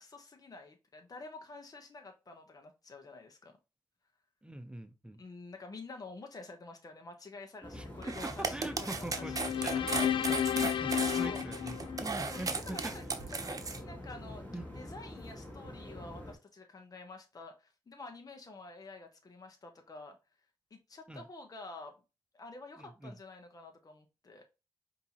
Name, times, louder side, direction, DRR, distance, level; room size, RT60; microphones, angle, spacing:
voice 1, 0.0-3.6 5.2-9.9 10.6-11.4 12.3-20.2 20.7-21.9 22.3-24.4, left 3 dB, 45° left, 1.1 m, -49 dB
voice 2, 4.4-5.2 7.7-12.9 14.5-14.7 21.1-21.3 22.8-23.1, right 1 dB, 10° right, 0.8 m, -44 dB
sound 1, 7.6-16.3, left 1 dB, 20° left, 2.2 m, -46 dB
sound 2, 8.0-13.8, right 4 dB, 40° right, 0.9 m, -36 dB
sound 3, 9.1-12.5, left 9 dB, 70° left, 0.4 m, -32 dB
5.2 x 2.9 x 2.9 m
supercardioid pair, 50°, 9 cm